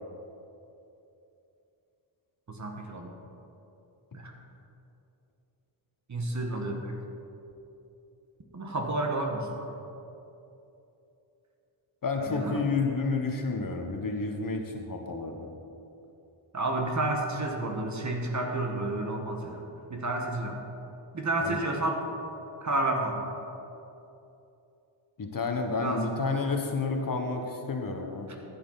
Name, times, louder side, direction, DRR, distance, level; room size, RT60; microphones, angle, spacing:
voice 1, 2.5-3.1 4.1-4.3 6.1-7.0 8.5-9.7 12.3-12.6 16.5-19.6 19.9-20.6 21.1-22.0 22.6-23.3 25.8-26.0, right 2 dB, 35° right, 2 dB, 1.5 m, -30 dB
voice 2, 12.0-15.5 21.4-21.6 25.2-28.3, left 4 dB, 45° left, 3 dB, 1.3 m, -30 dB
13.5 x 7.7 x 4.1 m, 2.9 s
cardioid pair, 70°, 47 cm